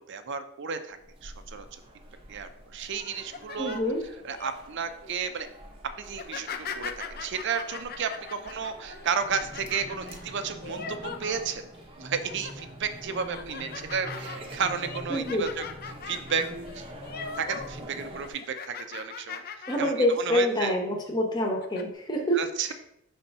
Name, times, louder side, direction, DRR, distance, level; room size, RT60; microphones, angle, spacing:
voice 1, 0.0-1.8 2.3-3.8 4.2-5.5 6.0-11.6 12.0-15.6 16.1-16.5 16.7-16.8 17.3-20.7 22.3-22.7, right 6 dB, 55° right, 9 dB, 0.6 m, -33 dB
sound 1, 1.0-18.3, right 1 dB, 25° right, 0.8 m, -44 dB
sound 2, 3.1-4.5 5.0-5.3 6.1-11.8 12.2-12.7 13.1-17.8 18.1-20.0 20.4-20.6 21.3-21.8, left 6 dB, 45° left, 0.5 m, -40 dB
voice 2, 3.6-4.0 15.1-15.5 19.7-22.4, equal, 20° left, 0 dB, 1.1 m, -26 dB
5.5 x 3.5 x 5.4 m, 0.77 s
head